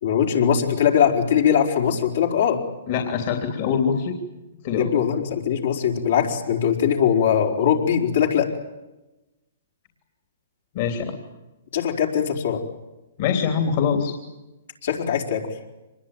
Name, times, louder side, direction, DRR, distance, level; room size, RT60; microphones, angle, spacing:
voice 1, 0.0-2.6 4.7-8.5 11.7-12.6 14.8-15.4, left 8 dB, 70° left, 1 dB, 4.7 m, -21 dB
voice 2, 2.9-4.2 4.6-4.9 10.7-11.2 13.2-14.1, left 6 dB, 50° left, 4 dB, 3.2 m, -23 dB
25.5 x 21.0 x 9.1 m, 1.0 s
hypercardioid pair, 140°, 0 cm